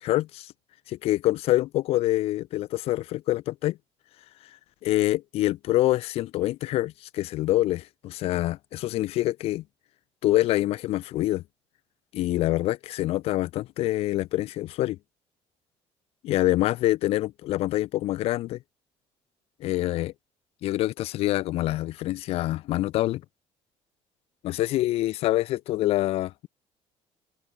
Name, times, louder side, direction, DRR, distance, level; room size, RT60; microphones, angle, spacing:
voice 1, 0.0-0.5 0.9-3.8 4.8-9.6 10.2-11.4 12.1-15.0 16.2-18.6 19.6-20.1 20.6-23.2 24.4-26.5, left 16 dB, 60° left, 0.8 m, -26 dB
open air
cardioid pair, 165°, 12 cm